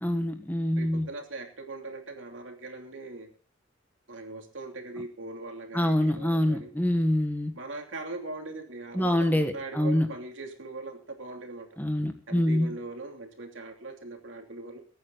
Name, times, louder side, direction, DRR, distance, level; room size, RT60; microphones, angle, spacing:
voice 1, 0.0-1.1 5.7-7.5 8.9-10.1 11.8-12.7, left 1 dB, 10° left, 7 dB, 1.3 m, -25 dB
voice 2, 0.8-3.3 4.1-6.7 7.5-11.7 12.3-14.8, right 2 dB, 70° right, 3 dB, 3.0 m, -40 dB
22.5 x 9.4 x 4.0 m, 0.40 s
head